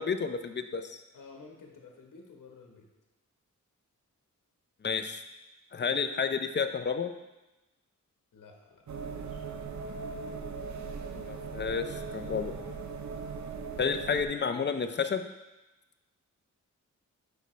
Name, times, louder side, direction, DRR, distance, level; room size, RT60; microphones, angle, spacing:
voice 1, 0.0-1.0 4.8-5.2 5.7-7.1 11.1-12.5 13.8-15.2, left 6 dB, 35° left, 8 dB, 0.5 m, -31 dB
voice 2, 1.1-2.9 8.3-9.4, left 4 dB, 75° left, 1 dB, 1.1 m, -52 dB
sound 1, 8.9-14.3, right 5 dB, 60° right, 0.7 m, -39 dB
8.1 x 5.5 x 3.1 m, 1.1 s
wide cardioid pair, 95°, 32 cm